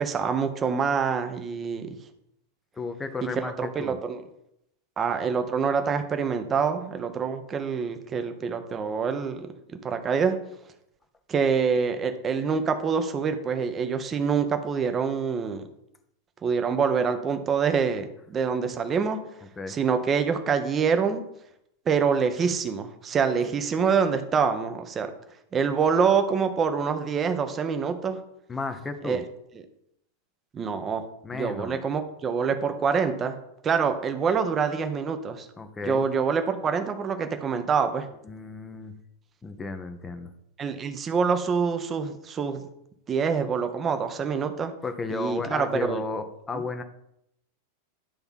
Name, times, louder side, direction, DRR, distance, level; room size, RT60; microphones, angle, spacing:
voice 1, 0.0-2.0 3.4-4.2 5.0-9.5 9.8-10.4 11.3-15.6 16.4-19.2 19.7-21.2 21.9-25.1 25.5-28.2 29.0-29.2 30.5-31.0 31.3-33.4 33.6-35.5 35.9-38.1 40.6-42.6 43.1-44.7 45.1-46.0 46.5-46.6, right 6 dB, 25° right, 7 dB, 0.9 m, -26 dB
voice 2, 2.7-4.0 19.6-19.8 28.5-29.2 31.2-31.8 35.6-36.0 38.2-38.9 39.4-40.3 44.8-46.8, left 3 dB, 15° left, 7 dB, 0.8 m, -33 dB
10.0 x 3.4 x 5.6 m, 0.77 s
figure-of-eight pair, 90°, 0 cm